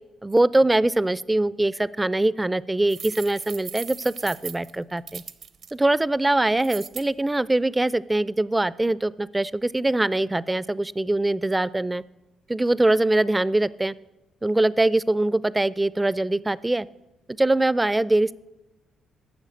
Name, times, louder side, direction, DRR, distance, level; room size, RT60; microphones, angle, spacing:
voice 1, 0.2-5.2 5.7-12.0 12.5-13.9 14.4-16.9 17.4-18.3, right 2 dB, 15° right, 19 dB, 0.3 m, -22 dB
sound 1, 2.9-5.7 6.6-7.1, right 7 dB, 60° right, 0.7 m, -38 dB
12.5 x 6.4 x 7.7 m, 1.0 s
cardioid pair, 90°, 0 cm